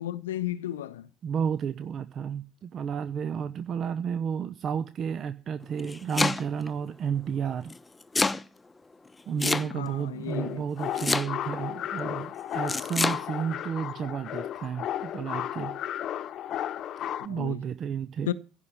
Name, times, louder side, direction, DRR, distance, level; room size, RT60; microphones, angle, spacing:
voice 1, 0.0-1.1 9.4-10.6 17.2-17.6 18.3-18.4, left 12 dB, 70° left, 0.7 m, -34 dB
voice 2, 1.2-7.7 9.3-15.7 17.2-18.3, right 7 dB, 40° right, 0.8 m, -32 dB
Domestic sounds home sounds, 5.6-6.7 7.7-8.4 9.4-10.0 11.0-11.6 12.7-13.2, left 3 dB, 15° left, 0.9 m, -27 dB
sound 1, 10.3-17.3, left 11 dB, 45° left, 1.0 m, -34 dB
16.0 x 5.6 x 9.7 m
figure-of-eight pair, 60°, 0 cm